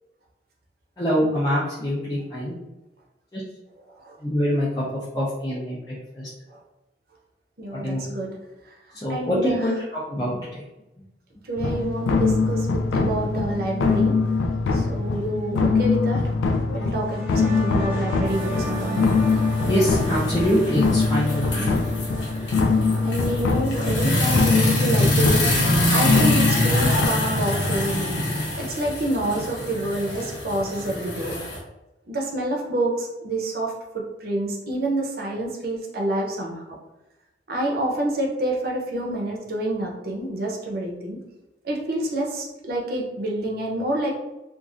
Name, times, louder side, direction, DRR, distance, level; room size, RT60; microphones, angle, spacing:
voice 1, 1.0-2.6 3.3-3.4 4.2-6.3 7.7-8.0 8.9-10.6 19.7-21.7, equal, 20° left, -9 dB, 0.5 m, -25 dB
voice 2, 7.6-8.3 9.1-9.6 11.5-14.2 14.7-16.2 16.7-19.0 22.5-28.2 28.6-31.4 32.1-36.6 37.5-41.2 41.6-44.1, right 1 dB, 55° right, -1 dB, 0.7 m, -28 dB
sound 1, 11.6-27.1, left 4 dB, 85° left, 0.3 m, -23 dB
sound 2, 17.0-24.3, equal, 10° right, 0.9 m, -36 dB
sound 3, 18.3-31.6, left 1 dB, 65° left, 0.9 m, -25 dB
3.0 x 2.4 x 2.4 m, 0.97 s
head